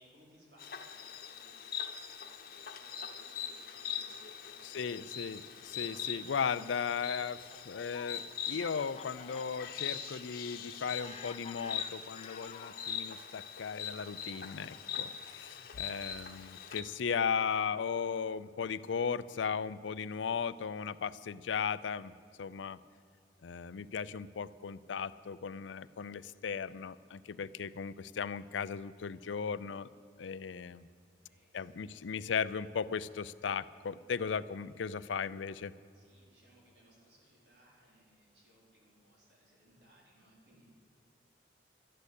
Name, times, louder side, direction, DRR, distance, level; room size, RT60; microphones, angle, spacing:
voice 1, 0.0-4.9 27.3-27.6 31.2-32.4 35.9-40.8, equal, 60° right, -3 dB, 4.4 m, -65 dB
Insect, 0.6-16.8, left 8 dB, 50° left, 1.1 m, -42 dB
voice 2, 4.6-22.1 22.4-22.8 23.4-29.9 30.2-30.9 31.5-35.7, left 6 dB, 85° left, 17 dB, 0.5 m, -36 dB
Fowl, 6.1-13.0 13.8-15.8, left 5 dB, 35° left, 0.6 m, -52 dB
13.0 x 10.5 x 8.2 m, 2.3 s
head